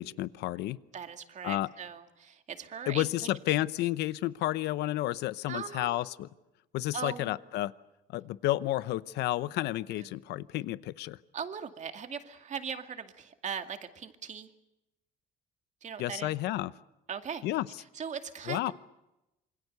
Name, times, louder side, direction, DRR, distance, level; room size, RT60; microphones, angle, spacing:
voice 1, 0.0-0.8 1.4-1.7 2.9-6.3 6.7-7.7 8.1-11.2 16.0-16.7 17.4-17.7 18.5-18.7, left 16 dB, 85° left, 16 dB, 0.9 m, -31 dB
voice 2, 0.9-3.1 5.5-6.0 6.9-7.4 11.3-14.5 15.8-16.3 17.1-17.4 18.0-18.7, right 7 dB, 45° right, 7 dB, 2.2 m, -39 dB
27.5 x 24.0 x 6.8 m, 0.93 s
cardioid pair, 110°, 17 cm